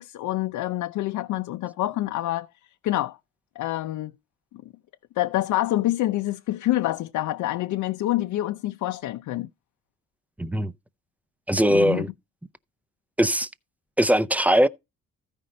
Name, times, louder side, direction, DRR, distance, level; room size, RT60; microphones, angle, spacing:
voice 1, 0.0-2.5 2.8-3.2 3.6-4.1 5.2-9.5 11.7-12.0, left 15 dB, 80° left, 0.6 m, -26 dB
voice 2, 10.4-10.7 11.5-12.1 13.2-13.5 14.0-14.7, equal, 5° right, 0.5 m, -20 dB
14.5 x 5.2 x 4.3 m
cardioid pair, 135°, 30 cm